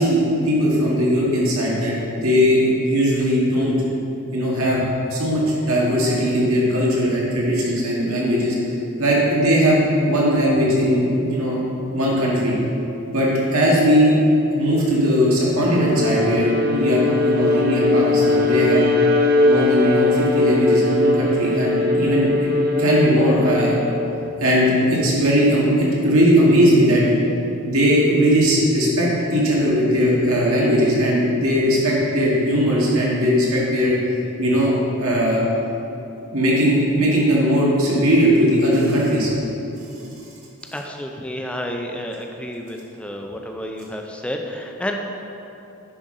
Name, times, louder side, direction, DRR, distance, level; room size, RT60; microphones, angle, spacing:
voice 1, 0.0-3.7 4.3-4.8 5.1-8.7 9.0-9.8 10.0-11.6 11.9-12.5 13.1-14.2 14.5-18.9 19.4-22.3 22.8-23.7 24.4-27.1 27.6-33.9 34.4-35.4 36.3-39.3, equal, 85° right, -5 dB, 1.8 m, -18 dB
Bowed string instrument, 15.7-24.1, left 2 dB, 45° right, 0.6 m, -20 dB
voice 2, 40.7-45.0, equal, 5° left, 2 dB, 0.5 m, -30 dB
9.9 x 5.7 x 3.8 m, 2.9 s
head